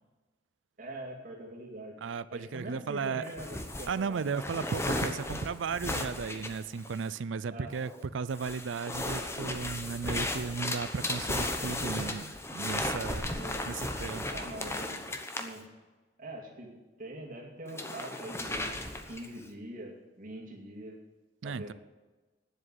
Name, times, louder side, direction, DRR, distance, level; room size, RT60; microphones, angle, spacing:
voice 1, 0.8-1.9 2.3-4.3 7.5-7.7 13.4-13.6 14.3-15.1 15.4-15.7 16.2-21.0 21.4-21.7, right 1 dB, 50° right, -2 dB, 2.5 m, -43 dB
voice 2, 2.0-3.3 3.9-13.3 13.7-14.3 21.4-21.7, right 5 dB, 85° right, 16 dB, 0.4 m, -35 dB
sound 1, 3.3-7.2 7.7-8.1 8.4-15.5 17.7-19.4, left 1 dB, 15° left, 1.0 m, -35 dB
10.0 x 7.8 x 9.7 m, 1.2 s
head